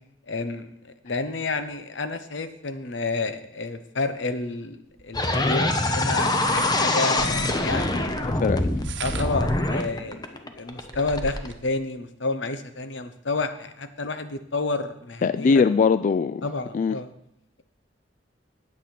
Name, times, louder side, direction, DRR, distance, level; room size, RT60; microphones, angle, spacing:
voice 1, 0.3-8.1 8.6-8.7 9.0-15.7 16.4-17.1, left 3 dB, 90° left, 10 dB, 1.0 m, -30 dB
sound 1, 5.0-5.1 6.3-7.7 8.6-9.5 10.1-10.2 10.5-11.6, right 4 dB, 75° right, 0.9 m, -37 dB
sound 2, 5.1-11.5, left 2 dB, 20° left, 0.9 m, -24 dB
voice 2, 8.2-8.6 15.2-16.4 16.7-17.0, left 5 dB, 45° left, 13 dB, 0.3 m, -21 dB
10.0 x 8.4 x 6.0 m, 0.77 s
head